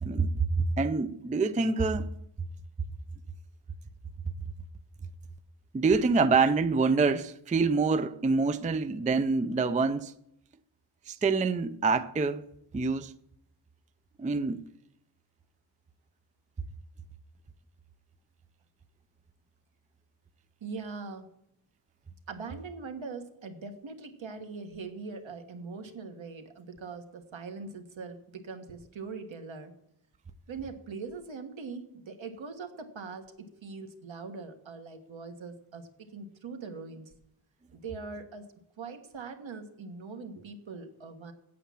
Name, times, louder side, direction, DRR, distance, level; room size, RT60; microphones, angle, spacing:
voice 1, 0.0-2.1 5.7-10.1 11.1-12.4 12.7-13.1 14.2-14.6, right 4 dB, 15° right, 0.4 m, -26 dB
voice 2, 20.6-21.3 22.3-29.7 30.5-37.1 37.7-38.5 38.8-41.3, right 4 dB, 70° right, 1.5 m, -42 dB
8.5 x 8.4 x 7.4 m
wide cardioid pair, 155°, 48 cm